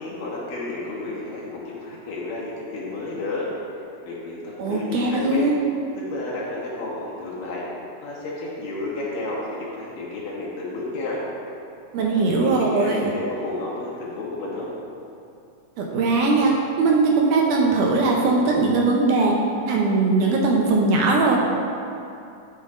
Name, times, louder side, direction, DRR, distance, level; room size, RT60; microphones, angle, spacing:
voice 1, 0.0-3.5 4.0-5.5 6.1-7.6 8.0-11.2 12.0-14.7, left 2 dB, 75° left, -6 dB, 3.1 m, -31 dB
voice 2, 4.6-5.6 11.9-13.1 15.8-16.5 16.8-19.3 19.7-21.4, right 3 dB, 75° right, -1 dB, 2.1 m, -20 dB
11.5 x 7.4 x 2.5 m, 2.6 s
omnidirectional pair, 3.9 m